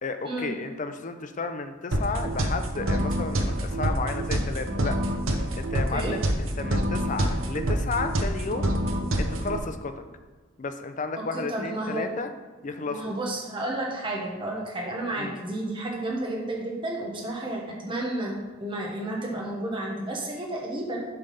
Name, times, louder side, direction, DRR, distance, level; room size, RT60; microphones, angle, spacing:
voice 1, 0.0-5.0 5.5-8.7 9.2-10.0 10.6-12.3 12.6-13.0 15.2-15.4, left 4 dB, 35° left, 8 dB, 0.5 m, -33 dB
sound 1, 1.9-9.6, right 1 dB, 75° right, 0.8 m, -27 dB
voice 2, 11.3-12.1 12.9-21.1, right 1 dB, 25° right, -1 dB, 1.0 m, -31 dB
7.1 x 3.4 x 5.5 m, 1.4 s
head